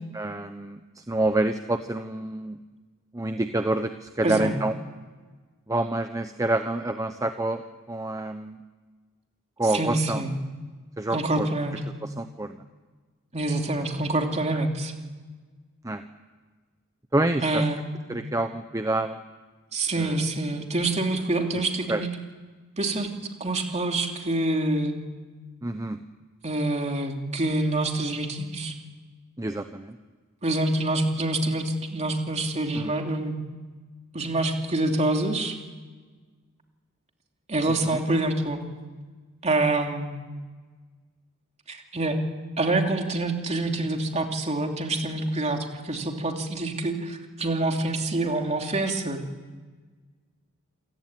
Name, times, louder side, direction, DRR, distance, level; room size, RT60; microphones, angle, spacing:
voice 1, 0.1-2.6 3.1-4.7 5.7-7.6 7.9-8.6 9.6-10.2 11.0-11.5 12.0-12.6 15.8-16.0 17.1-17.7 18.1-19.2 20.0-20.1 21.9-22.0 25.6-26.0 29.4-30.0 32.8-32.9 37.8-38.0, right 2 dB, 15° right, 8 dB, 0.8 m, -27 dB
voice 2, 4.2-4.5 9.7-10.3 11.1-11.8 13.3-14.9 17.4-17.8 19.7-22.1 22.8-23.1 23.4-25.0 26.4-28.7 30.4-33.3 34.1-35.6 37.5-38.6 39.4-40.1 41.7-42.2 42.6-49.2, right 2 dB, 30° right, 3 dB, 3.0 m, -26 dB
27.5 x 17.0 x 9.2 m, 1.4 s
head